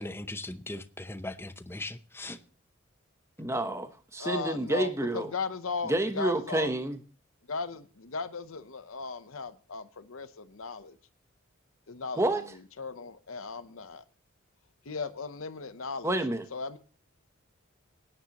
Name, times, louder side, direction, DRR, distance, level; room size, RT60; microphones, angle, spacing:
voice 1, 0.0-2.4, left 2 dB, 10° left, 0.7 m, -39 dB
voice 2, 3.4-5.3 5.9-7.0 12.2-12.4 16.0-16.4, right 1 dB, 15° right, 1.0 m, -29 dB
voice 3, 4.2-6.7 7.5-11.0 11.9-14.0 14.8-16.1 16.5-16.8, left 4 dB, 70° left, 0.9 m, -37 dB
19.5 x 9.9 x 3.0 m
head